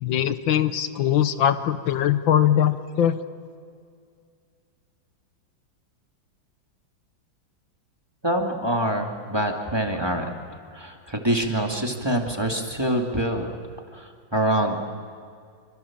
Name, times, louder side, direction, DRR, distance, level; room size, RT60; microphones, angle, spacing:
voice 1, 0.0-3.2, left 10 dB, 85° left, 11 dB, 1.7 m, -21 dB
voice 2, 8.2-10.3 10.7-13.5 13.9-14.8, right 1 dB, 15° right, 2 dB, 2.3 m, -25 dB
26.5 x 25.5 x 7.4 m, 2.2 s
omnidirectional pair, 2.1 m